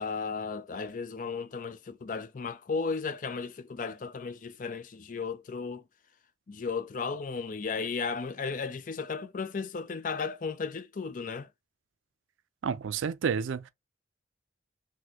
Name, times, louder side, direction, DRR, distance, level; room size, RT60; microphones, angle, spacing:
voice 1, 0.0-5.8 6.5-11.5, left 5 dB, 45° left, 0.4 m, -35 dB
voice 2, 12.6-13.7, right 6 dB, 85° right, 0.4 m, -30 dB
4.1 x 2.2 x 2.8 m
head